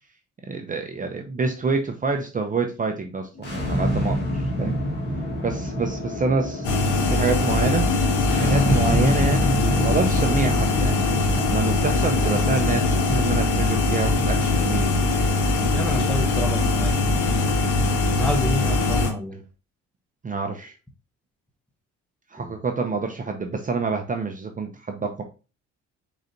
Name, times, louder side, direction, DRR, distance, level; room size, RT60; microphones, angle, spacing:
voice 1, 0.5-4.8 5.4-7.9 8.3-10.9 11.2-14.9 18.8-18.9 20.2-20.7 22.3-25.2, right 4 dB, 25° right, 4 dB, 0.6 m, -27 dB
sound 1, 3.3-18.3, left 1 dB, 35° left, 1.9 m, -29 dB
sound 2, 6.6-19.1, left 2 dB, 85° left, 1.2 m, -22 dB
voice 2, 15.7-17.4 18.2-19.4 22.4-22.6, left 1 dB, 5° left, 4 dB, 1.0 m, -29 dB
4.8 x 3.9 x 2.7 m, 0.32 s
cardioid pair, 95°, 30 cm